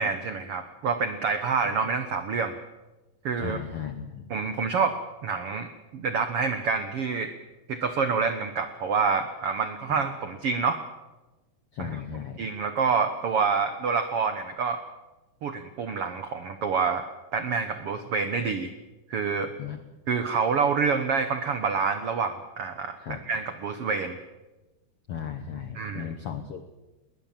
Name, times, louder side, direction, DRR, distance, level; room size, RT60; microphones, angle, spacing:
voice 1, 0.0-2.5 3.2-3.6 4.3-7.3 7.7-10.8 11.8-12.0 12.4-14.8 15.4-17.1 17.3-18.7 19.1-19.5 20.1-24.2 25.7-26.1, right 5 dB, 80° right, 9 dB, 1.3 m, -27 dB
voice 2, 3.4-4.2 9.9-10.0 11.7-12.4 19.6-19.8 23.0-23.2 25.1-26.6, left 8 dB, 75° left, 8 dB, 1.3 m, -35 dB
21.0 x 20.0 x 7.5 m, 1.1 s
omnidirectional pair, 4.4 m